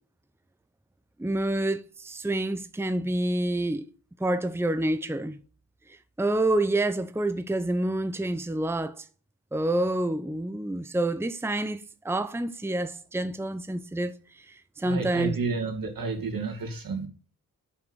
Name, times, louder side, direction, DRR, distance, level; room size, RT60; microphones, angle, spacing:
voice 1, 1.2-3.8 4.2-5.4 6.2-9.0 9.5-14.1 14.5-15.4, right 1 dB, 5° right, 0.8 m, -28 dB
voice 2, 14.8-17.1, right 4 dB, 70° right, 2.9 m, -31 dB
7.9 x 5.8 x 6.4 m
cardioid pair, 50°, 36 cm